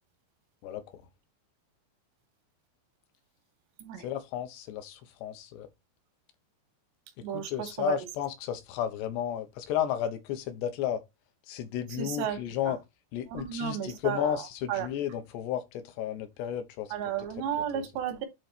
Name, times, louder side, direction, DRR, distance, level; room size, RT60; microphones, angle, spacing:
voice 1, 0.6-1.0 4.0-5.7 7.2-11.0 11.5-12.8 13.1-16.9 17.7-17.8, left 10 dB, 80° left, 3.2 m, -33 dB
voice 2, 7.2-8.0 12.0-12.4 12.7-12.8 13.3-14.4 14.7-14.9 16.9-18.3, right 9 dB, 90° right, 3.5 m, -33 dB
10.0 x 4.1 x 4.4 m
omnidirectional pair, 4.8 m